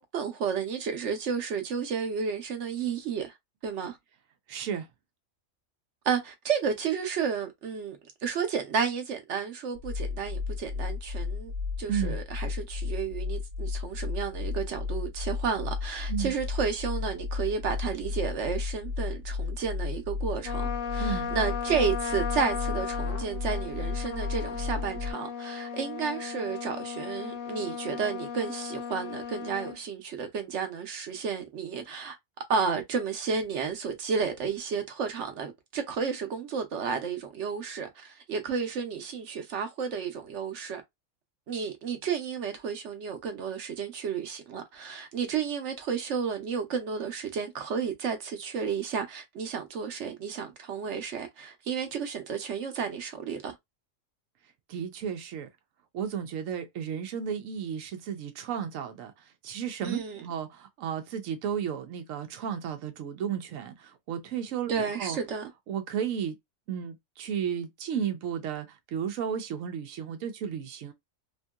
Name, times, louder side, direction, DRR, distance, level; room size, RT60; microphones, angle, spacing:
voice 1, 0.0-3.3 3.6-4.0 6.0-11.5 11.8-32.2 32.5-40.8 41.5-53.5 59.8-60.2 64.7-65.5, right 6 dB, 65° right, 1.0 m, -32 dB
voice 2, 4.5-4.9 11.9-12.2 16.1-16.3 21.0-21.3 54.7-55.5 55.9-65.2 65.7-66.4 66.7-70.9, right 8 dB, 90° right, 1.0 m, -33 dB
sound 1, 9.7-25.1, left 4 dB, 50° right, 1.1 m, -33 dB
Trumpet, 20.4-29.8, left 7 dB, 75° left, 1.0 m, -36 dB
2.9 x 2.7 x 2.2 m
omnidirectional pair, 1.3 m